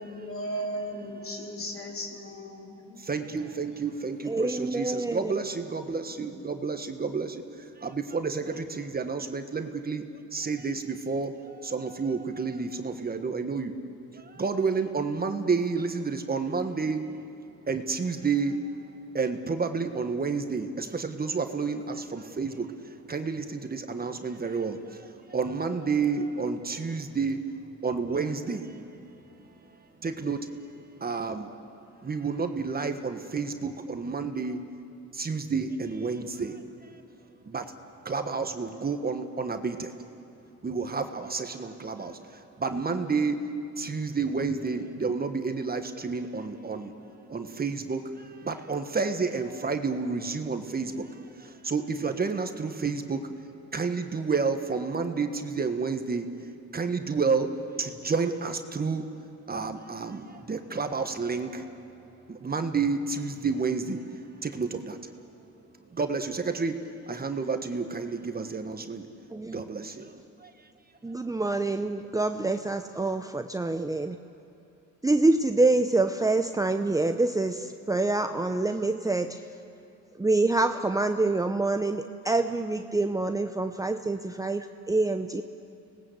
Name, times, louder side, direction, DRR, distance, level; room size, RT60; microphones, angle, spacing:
voice 1, 0.0-3.0, equal, 45° left, 1 dB, 3.9 m, -36 dB
voice 2, 3.0-13.7 14.1-17.1 17.7-18.8 19.1-27.5 27.8-28.8 30.0-30.5 31.0-31.5 32.0-34.6 35.1-37.0 37.5-37.7 38.0-39.9 40.6-43.4 43.8-46.9 47.3-53.3 53.7-56.3 56.7-57.5 57.8-59.1 59.5-61.8 62.3-65.0 65.9-66.8 67.0-69.1 69.5-70.1 70.4-70.5, right 4 dB, 30° right, 7 dB, 1.6 m, -30 dB
voice 3, 4.3-5.3 69.3-69.6 71.0-74.2 75.0-79.4 80.2-85.4, right 2 dB, 10° right, 7 dB, 0.8 m, -26 dB
25.5 x 19.5 x 8.1 m, 2.9 s
cardioid pair, 90°, 30 cm